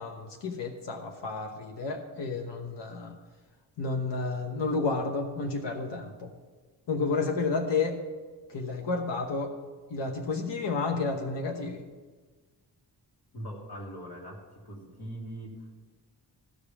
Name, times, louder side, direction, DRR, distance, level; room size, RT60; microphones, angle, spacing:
voice 1, 0.0-3.1 3.8-6.3 6.9-8.0 8.5-9.6 9.9-11.8, left 4 dB, 85° left, 4 dB, 1.1 m, -31 dB
voice 2, 13.3-15.7, equal, 65° left, -1 dB, 2.5 m, -41 dB
14.0 x 5.2 x 7.1 m, 1.3 s
wide cardioid pair, 115°, 42 cm